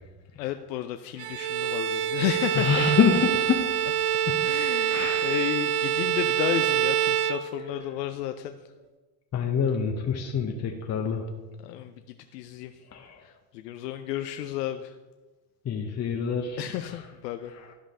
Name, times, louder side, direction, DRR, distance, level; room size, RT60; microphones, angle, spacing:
voice 1, 0.4-3.0 4.4-8.5 11.6-11.9 12.3-12.7 13.2-14.9 16.6-17.5, left 12 dB, 85° left, 8 dB, 0.6 m, -32 dB
Bowed string instrument, 1.2-8.0, right 10 dB, 85° right, 0.5 m, -26 dB
voice 2, 2.6-3.6 4.3-4.4 4.9-5.3 9.3-11.2 12.9-13.1 15.6-16.6, left 6 dB, 35° left, 2 dB, 1.0 m, -26 dB
11.5 x 5.1 x 3.7 m, 1.2 s
hypercardioid pair, 80°, 48 cm